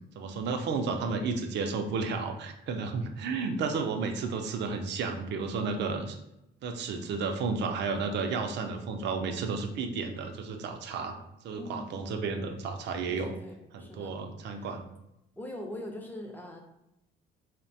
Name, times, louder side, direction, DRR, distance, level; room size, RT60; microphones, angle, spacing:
voice 1, 0.2-6.2 6.6-11.1 11.4-13.3 13.7-14.8, right 4 dB, 60° right, 5 dB, 0.5 m, -32 dB
voice 2, 11.5-12.0 13.1-14.2 14.6-14.7 15.4-16.6, left 1 dB, 10° left, 1 dB, 0.5 m, -42 dB
2.7 x 2.1 x 2.7 m, 0.86 s
cardioid pair, 90°, 20 cm